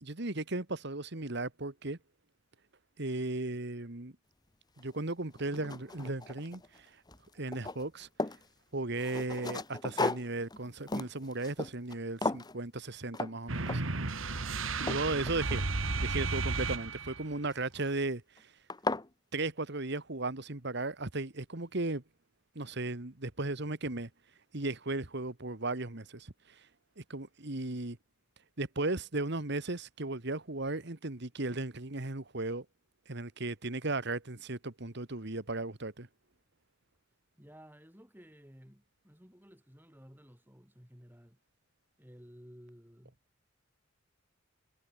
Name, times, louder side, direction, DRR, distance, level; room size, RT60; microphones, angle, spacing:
voice 1, 0.0-2.0 3.0-4.1 4.8-6.9 7.4-8.1 8.7-13.8 14.8-15.6 16.0-18.5 19.3-22.0 22.6-24.1 24.5-26.3 27.0-28.0 28.6-32.7 33.1-36.1, right 2 dB, 55° right, 1.9 m, -36 dB
sound 1, 4.8-4.9 5.4-6.8 7.1-8.5 9.0-12.0 12.2-12.6 13.1-13.3 13.7-14.0 14.4-16.0 17.5-17.9 18.4-18.5 18.7-19.1, left 2 dB, 20° left, 1.1 m, -36 dB
sound 2, 13.5-17.3, right 3 dB, 75° right, 2.1 m, -33 dB
voice 2, 37.4-41.4 42.0-43.2, equal, 10° right, 7.7 m, -55 dB
head